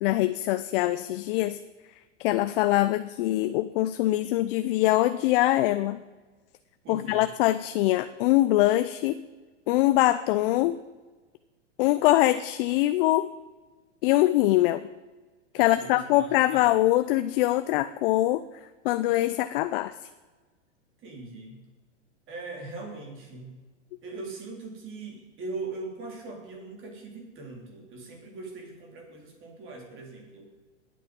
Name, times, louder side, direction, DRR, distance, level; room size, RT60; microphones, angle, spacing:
voice 1, 0.0-1.6 2.2-6.0 6.9-9.2 9.7-10.8 11.8-13.3 14.0-14.8 15.5-18.4 18.8-19.9, left 16 dB, 50° left, 12 dB, 0.6 m, -23 dB
voice 2, 6.8-7.3 15.6-16.7 21.0-21.6 22.3-23.6 24.0-30.5, right 3 dB, 35° right, 2 dB, 3.6 m, -40 dB
20.5 x 8.7 x 5.2 m, 1.3 s
hypercardioid pair, 120°, 37 cm